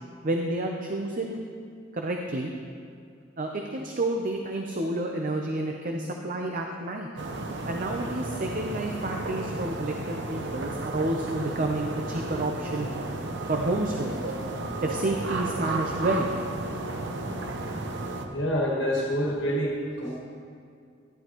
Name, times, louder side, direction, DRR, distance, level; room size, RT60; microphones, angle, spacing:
voice 1, 0.2-1.4 1.9-2.5 3.4-7.1 7.7-12.9 13.5-14.2 14.8-16.3, right 2 dB, 50° right, 2 dB, 0.6 m, -29 dB
sound 1, 7.2-18.2, right 2 dB, 80° right, 0.8 m, -33 dB
voice 2, 18.3-20.2, equal, 90° left, -3 dB, 1.4 m, -27 dB
13.0 x 11.5 x 3.0 m, 2.3 s
head